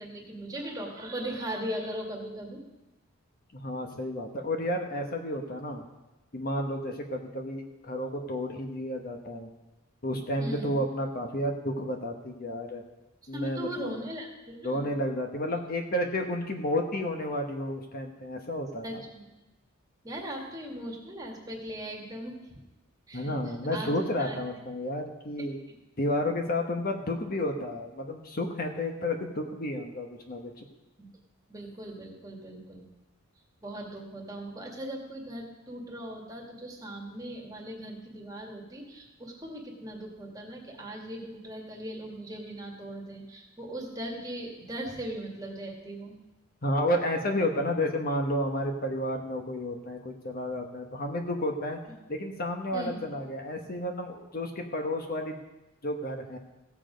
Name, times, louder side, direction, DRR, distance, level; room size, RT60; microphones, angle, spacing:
voice 1, 0.0-2.6 10.4-10.8 13.3-14.8 18.8-19.3 20.0-22.6 23.1-23.3 23.7-24.4 31.0-31.1 31.5-32.8 33.6-46.1 52.7-53.0, right 1 dB, 20° right, -1 dB, 2.0 m, -39 dB
voice 2, 3.5-5.8 6.3-9.5 10.0-12.8 13.3-14.0 14.6-19.1 23.1-25.6 26.0-30.6 46.6-51.8 52.1-55.4 55.8-56.4, left 1 dB, 45° left, 4 dB, 1.2 m, -31 dB
16.0 x 7.4 x 5.2 m, 1.0 s
head